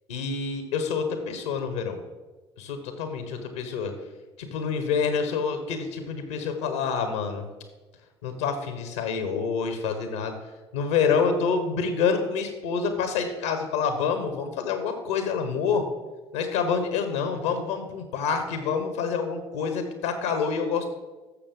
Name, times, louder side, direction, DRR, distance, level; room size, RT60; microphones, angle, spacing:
voice 1, 0.1-2.0 2.6-3.9 4.4-7.5 8.2-10.3 10.7-15.8 16.3-20.9, left 5 dB, 75° left, 7 dB, 1.1 m, -27 dB
13.0 x 6.8 x 3.7 m, 1.2 s
figure-of-eight pair, 60°, 14 cm